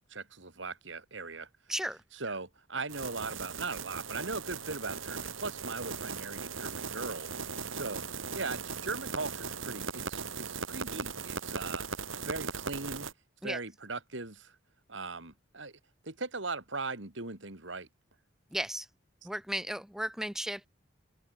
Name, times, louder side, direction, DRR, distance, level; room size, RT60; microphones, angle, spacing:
voice 1, 0.1-1.5 2.1-7.3 7.7-8.0 8.3-11.8 12.3-13.1 13.4-14.5 14.9-15.8 16.0-17.9, right 3 dB, 70° right, 3.0 m, -39 dB
sound 1, 2.9-13.1, right 5 dB, 90° right, 4.6 m, -38 dB
voice 2, 18.5-18.9 19.2-20.7, right 1 dB, ahead, 0.7 m, -35 dB
open air
head